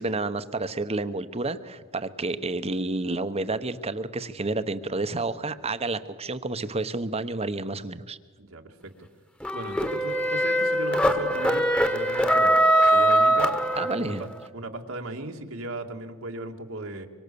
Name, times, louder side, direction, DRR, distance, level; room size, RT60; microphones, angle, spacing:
voice 1, 0.0-8.2 13.7-14.2, right 2 dB, 30° right, 12 dB, 1.1 m, -30 dB
voice 2, 8.4-8.9 9.5-11.7 11.9-13.6 13.9-17.1, right 2 dB, 80° right, 3 dB, 2.3 m, -37 dB
sound 1, 9.4-14.3, right 1 dB, 5° left, 1.5 m, -22 dB
25.0 x 25.0 x 7.0 m, 1.5 s
head